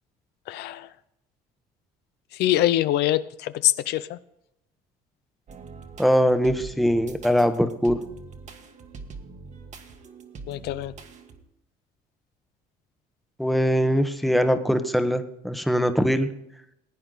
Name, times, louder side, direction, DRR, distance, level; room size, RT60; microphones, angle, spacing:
voice 1, 0.5-0.9 2.3-4.2 10.5-10.9, left 13 dB, 80° left, 14 dB, 0.5 m, -24 dB
sound 1, 5.5-11.4, right 4 dB, 45° right, 1.4 m, -43 dB
voice 2, 6.0-8.0 13.4-16.3, equal, ahead, 9 dB, 1.0 m, -22 dB
16.0 x 9.1 x 3.9 m, 0.81 s
cardioid pair, 110°, 17 cm